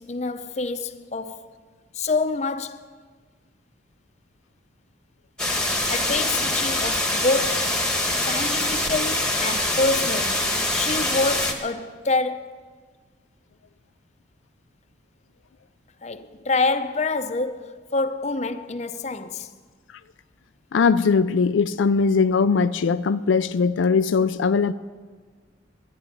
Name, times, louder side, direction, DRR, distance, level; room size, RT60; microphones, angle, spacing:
voice 1, 0.0-1.5 1.9-2.8 5.9-7.8 8.2-12.7 16.0-19.5, left 3 dB, 35° left, 0.6 m, -27 dB
sound 1, 5.4-11.5, left 1 dB, 5° left, 1.2 m, -24 dB
voice 2, 20.7-24.7, left 5 dB, 85° left, 0.4 m, -20 dB
12.0 x 10.5 x 9.9 m
head